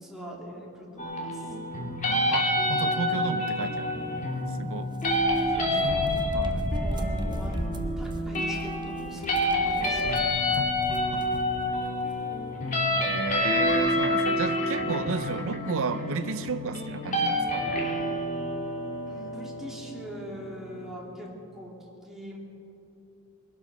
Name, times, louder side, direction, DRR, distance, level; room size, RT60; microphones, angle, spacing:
voice 1, 0.0-1.5 5.5-6.1 6.7-10.2 19.1-22.4, right 1 dB, ahead, -4 dB, 2.6 m, -42 dB
sound 1, 1.0-20.9, left 1 dB, 35° left, 3.0 m, -28 dB
voice 2, 2.0-4.0 4.5-4.9 6.3-6.7 10.5-11.5 13.0-17.7, right 5 dB, 65° right, 10 dB, 0.6 m, -33 dB
sound 2, 5.0-11.7 12.1-12.2 13.3-13.4 13.6-13.9, right 1 dB, 20° right, 0.8 m, -35 dB
Bird vocalization bird call bird song, 13.6-17.9, left 3 dB, 60° left, 2.0 m, -41 dB
21.5 x 12.5 x 5.2 m, 2.7 s
head